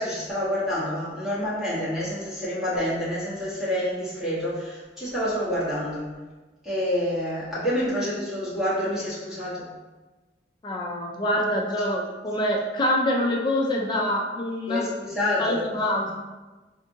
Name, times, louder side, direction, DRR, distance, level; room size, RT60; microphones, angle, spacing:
voice 1, 0.0-6.1 6.6-9.7 14.7-15.7 16.0-16.1, equal, ahead, -11 dB, 1.2 m, -28 dB
voice 2, 10.6-14.9 15.4-16.1, left 1 dB, 25° left, -1 dB, 0.3 m, -25 dB
4.3 x 2.5 x 2.6 m, 1.2 s
head